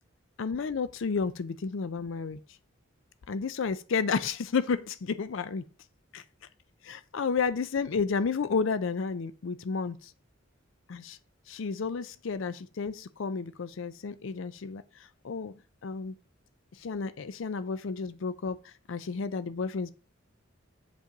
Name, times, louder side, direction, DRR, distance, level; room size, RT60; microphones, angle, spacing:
voice 1, 0.4-2.4 3.3-5.7 6.1-6.2 6.8-10.1 10.9-11.2 11.5-15.5 15.8-16.1 16.7-19.9, left 5 dB, 65° left, 0.4 m, -32 dB
8.4 x 5.3 x 3.8 m
head